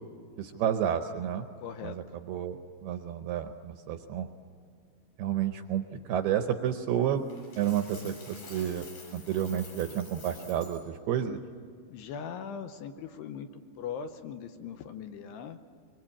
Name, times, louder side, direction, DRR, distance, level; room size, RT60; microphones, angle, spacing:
voice 1, 0.4-1.5 1.8-4.3 5.2-7.2 7.6-8.9 9.1-11.4, right 10 dB, 75° right, 7 dB, 2.4 m, -30 dB
voice 2, 1.6-2.0 11.9-13.5 13.8-15.6, left 7 dB, 75° left, 8 dB, 2.6 m, -40 dB
Coin (dropping), 7.3-10.8, left 3 dB, 60° left, 9.2 m, -49 dB
24.5 x 23.0 x 8.6 m, 2.2 s
omnidirectional pair, 5.4 m